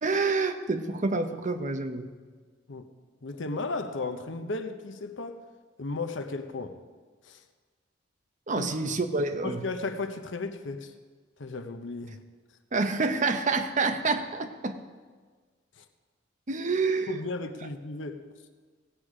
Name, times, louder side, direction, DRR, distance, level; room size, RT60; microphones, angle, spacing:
voice 1, 0.0-2.1 8.5-9.6 12.7-14.8 16.5-17.2, right 3 dB, 40° right, 0.8 m, -28 dB
voice 2, 3.2-5.4 5.8-6.8 7.2-7.4 8.6-8.7 9.4-10.9 11.4-12.2 15.8-15.9 17.1-18.2, left 3 dB, 80° left, 0.9 m, -35 dB
17.0 x 8.2 x 5.0 m
head